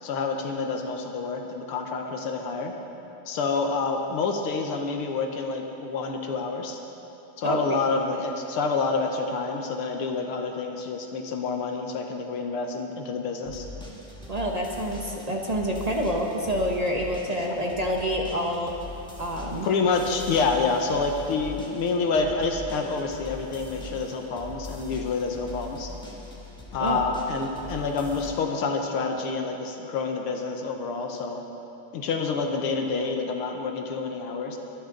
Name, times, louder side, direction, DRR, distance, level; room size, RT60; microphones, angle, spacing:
voice 1, 0.0-2.7 3.3-6.8 7.4-13.7 17.3-17.4 19.6-25.9 26.7-31.4 31.9-34.6, left 4 dB, 80° left, 3 dB, 2.0 m, -28 dB
voice 2, 7.4-7.8 14.3-18.7 19.2-19.7 26.8-27.0, equal, 30° right, 0 dB, 0.7 m, -27 dB
sound 1, 13.4-28.3, left 2 dB, 5° left, 1.3 m, -42 dB
22.5 x 11.5 x 3.9 m, 2.9 s
omnidirectional pair, 2.4 m